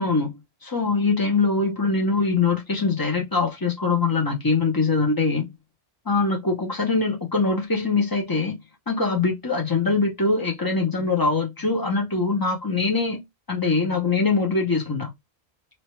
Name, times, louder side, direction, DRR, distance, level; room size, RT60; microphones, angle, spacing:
voice 1, 0.0-5.5 6.1-8.6 8.9-13.2 13.5-15.1, left 4 dB, 25° left, 0.6 m, -23 dB
2.9 x 2.3 x 3.0 m
omnidirectional pair, 1.0 m